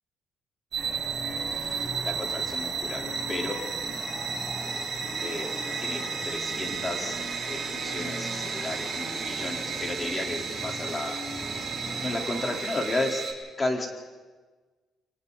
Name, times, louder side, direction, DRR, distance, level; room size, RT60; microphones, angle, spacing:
sound 1, 0.7-13.3, right 5 dB, 50° right, 5.5 m, -33 dB
sound 2, 0.8-12.6, equal, 5° left, 6.3 m, -39 dB
voice 1, 1.5-4.2 5.2-11.2 11.5-13.3 13.6-13.9, left 2 dB, 30° left, 1 dB, 3.9 m, -34 dB
29.5 x 23.5 x 4.1 m, 1.3 s
cardioid pair, 90°, 0 cm